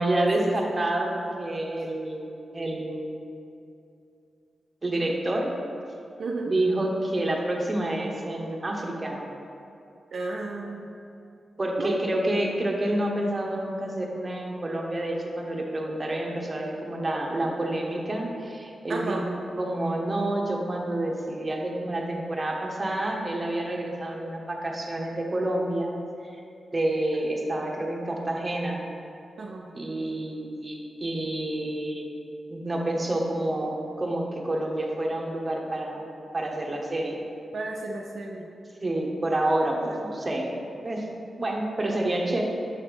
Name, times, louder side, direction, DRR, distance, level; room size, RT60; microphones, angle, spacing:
voice 1, 0.0-3.3 4.8-5.5 6.5-9.2 11.6-25.9 26.2-26.3 26.7-28.8 29.7-32.1 32.5-36.0 36.3-37.2 38.8-40.5 40.8-41.1 41.4-42.4, right 1 dB, 25° right, -1 dB, 0.9 m, -28 dB
voice 2, 6.2-6.5 10.1-10.9 11.8-11.9 18.9-19.2 29.4-29.7 37.5-38.5 38.8-39.0 39.8-39.9, right 3 dB, 65° right, 0 dB, 0.5 m, -33 dB
6.4 x 3.3 x 5.9 m, 2.6 s
wide cardioid pair, 95°, 0 cm